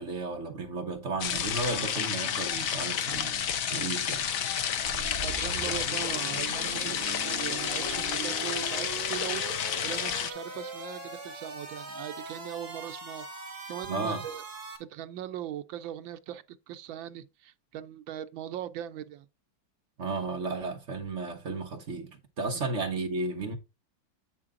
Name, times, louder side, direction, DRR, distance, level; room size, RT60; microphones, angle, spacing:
voice 1, 0.0-4.3 4.6-4.7 13.8-14.2 20.0-23.6, right 3 dB, 50° right, 0.9 m, -34 dB
sound 1, 1.2-10.3, left 8 dB, 65° left, 0.8 m, -30 dB
sound 2, 4.8-14.8, right 4 dB, 30° right, 2.3 m, -40 dB
voice 2, 4.8-9.4 9.8-14.4 14.8-19.3 22.5-22.6, right 11 dB, 80° right, 1.4 m, -40 dB
8.8 x 4.6 x 3.6 m
omnidirectional pair, 2.1 m